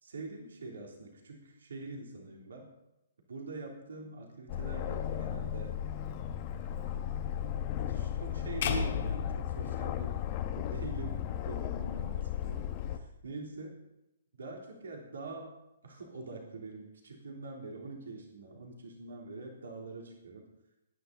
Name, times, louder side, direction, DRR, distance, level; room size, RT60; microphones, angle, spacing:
voice 1, 0.0-2.7 3.3-5.8 6.5-7.0 7.9-13.7 14.4-15.5 15.8-20.5, right 3 dB, 70° right, 0 dB, 3.5 m, -44 dB
Aircraft, 4.5-13.0, left 10 dB, 35° left, 1.3 m, -35 dB
sound 1, 8.6-10.9, left 6 dB, 50° left, 2.3 m, -35 dB
19.5 x 10.5 x 4.1 m, 0.89 s
figure-of-eight pair, 125°, 0 cm